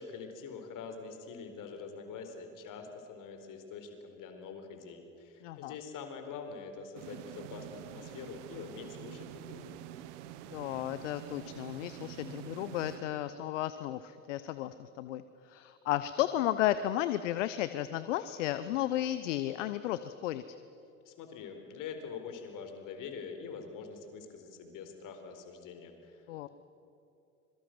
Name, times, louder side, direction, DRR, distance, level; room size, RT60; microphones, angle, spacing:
voice 1, 0.0-9.7 21.1-26.5, left 5 dB, 55° left, 6 dB, 4.4 m, -45 dB
voice 2, 5.4-5.7 10.5-15.2 15.5-20.4 26.3-26.5, left 13 dB, 75° left, 13 dB, 0.9 m, -33 dB
sound 1, 7.0-13.7, right 12 dB, 70° right, 1.4 m, -47 dB
26.0 x 23.5 x 7.8 m, 2.7 s
hypercardioid pair, 65°, 37 cm